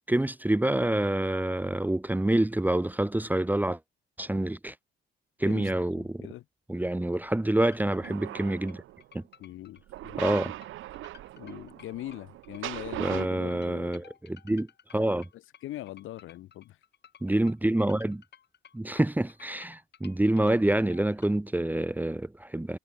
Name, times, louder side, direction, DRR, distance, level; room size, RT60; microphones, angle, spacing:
voice 1, 0.1-3.8 4.2-4.7 5.4-6.3 6.7-8.8 9.1-9.2 10.2-10.5 13.0-15.3 17.2-18.2 18.7-22.8, right 1 dB, 10° right, 1.1 m, -27 dB
voice 2, 5.4-6.4 9.4-10.2 11.4-14.0 15.6-16.8, left 15 dB, 85° left, 5.5 m, -41 dB
sound 1, 7.6-21.3, left 8 dB, 60° left, 6.0 m, -55 dB
sound 2, 7.7-9.0 9.9-13.3, right 15 dB, 80° right, 0.8 m, -39 dB
cardioid pair, 90°, 20 cm